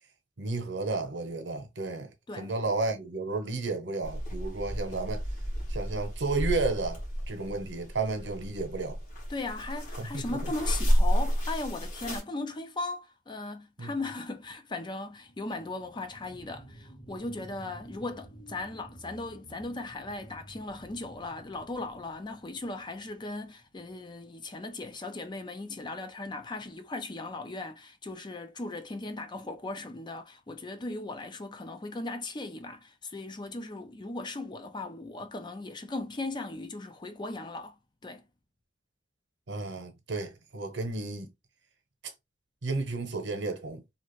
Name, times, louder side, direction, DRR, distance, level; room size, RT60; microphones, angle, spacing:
voice 1, 0.4-5.2 5.7-7.0 7.3-9.0 10.0-10.4 13.8-13.9 39.5-41.3 42.6-43.8, right 3 dB, 80° right, 0.9 m, -32 dB
sound 1, 4.0-12.2, equal, 45° left, 1.4 m, -31 dB
voice 2, 9.3-37.8 38.0-38.3, left 2 dB, 25° left, 0.5 m, -38 dB
sound 2, 15.1-24.1 24.6-24.7, right 1 dB, 80° left, 1.3 m, -52 dB
2.9 x 2.4 x 3.1 m
head